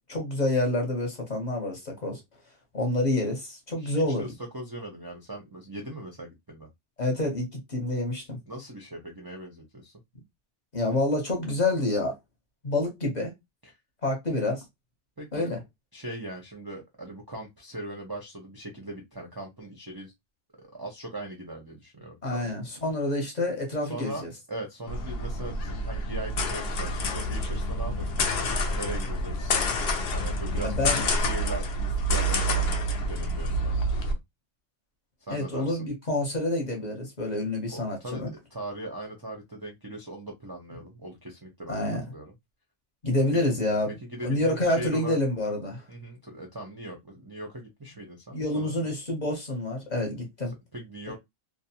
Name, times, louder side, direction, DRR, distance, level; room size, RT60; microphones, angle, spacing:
voice 1, 0.1-2.2 2.7-4.2 7.0-8.4 10.7-12.1 12.6-13.3 14.0-14.6 15.3-15.6 22.2-24.3 30.5-31.0 35.3-38.3 41.7-42.0 43.0-43.9 44.2-45.8 48.3-50.5, left 2 dB, 40° left, 0.9 m, -28 dB
voice 2, 3.8-6.7 8.5-9.9 13.6-13.7 15.2-15.5 15.9-20.1 20.6-22.5 23.8-24.2 24.5-29.6 30.0-34.2 35.3-35.9 37.7-42.3 44.0-45.2 45.9-48.9 50.7-51.2, right 1 dB, 30° right, 0.4 m, -40 dB
sound 1, 24.9-34.1, equal, 65° left, 0.8 m, -28 dB
2.5 x 2.1 x 2.7 m
omnidirectional pair, 1.2 m